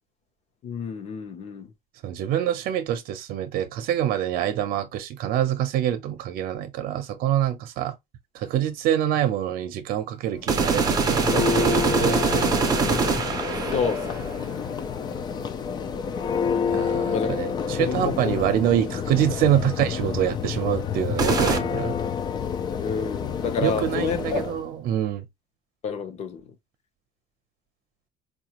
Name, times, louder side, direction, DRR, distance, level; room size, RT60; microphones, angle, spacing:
voice 1, 0.6-1.7 13.7-14.7 17.1-17.3 17.8-18.3 22.8-24.5 25.8-26.4, left 5 dB, 45° left, 0.8 m, -29 dB
voice 2, 2.0-7.9 8.3-12.5 16.7-21.9 23.6-25.2, right 11 dB, 65° right, 0.7 m, -26 dB
Church bell, 10.4-24.6, left 7 dB, 25° left, 0.4 m, -28 dB
sound 1, 10.5-14.5 21.2-21.6, right 5 dB, 25° right, 0.6 m, -23 dB
4.8 x 2.4 x 2.9 m
cardioid pair, 175°, 16 cm